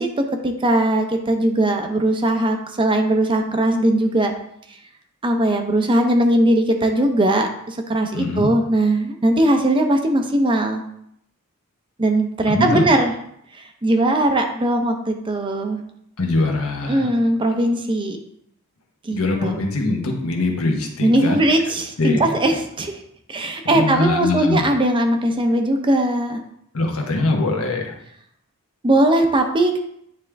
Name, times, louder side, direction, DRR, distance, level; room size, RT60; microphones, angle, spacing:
voice 1, 0.0-4.3 5.2-10.8 12.0-13.1 13.5-15.8 16.9-18.2 19.0-19.6 21.0-23.0 23.3-26.4 28.8-29.8, right 1 dB, 25° right, 4 dB, 0.6 m, -19 dB
voice 2, 8.1-8.5 12.5-12.9 16.2-17.1 19.1-21.4 22.0-22.4 23.6-24.6 26.7-28.0, left 2 dB, 75° left, 1 dB, 1.2 m, -22 dB
9.2 x 3.6 x 3.4 m, 0.72 s
head